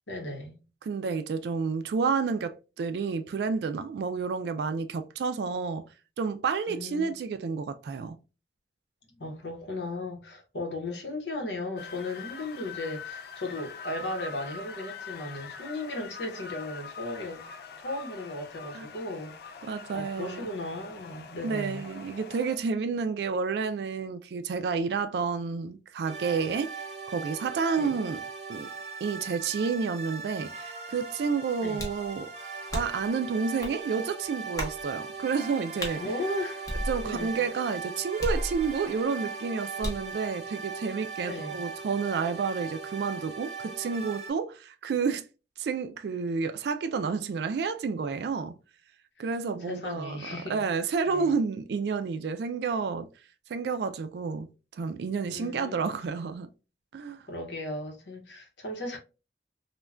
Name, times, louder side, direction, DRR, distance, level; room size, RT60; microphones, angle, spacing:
voice 1, 0.1-0.6 6.7-7.1 9.1-17.4 17.8-21.9 27.8-27.9 31.6-31.8 36.0-36.7 37.0-37.4 41.2-41.6 49.6-50.6 51.1-51.3 55.3-56.0 57.3-59.0, left 2 dB, 85° left, 0.8 m, -36 dB
voice 2, 0.8-5.9 6.2-8.2 18.7-18.9 19.7-20.5 21.4-26.8 27.1-28.2 28.5-28.7 29.0-32.3 32.7-36.0 36.9-45.2 45.6-48.6 49.2-53.1 53.5-56.5 56.9-57.3, right 5 dB, 70° right, 0.3 m, -30 dB
sound 1, 11.8-22.6, left 5 dB, 60° left, 0.4 m, -44 dB
sound 2, 26.1-44.3, right 4 dB, 40° right, 0.7 m, -39 dB
sound 3, 31.8-32.1 32.7-33.1 33.6-33.8 34.6-34.8 35.8-36.0 36.7-37.3 38.2-38.9 39.8-40.1, equal, 20° left, 0.7 m, -33 dB
3.2 x 2.2 x 2.3 m
head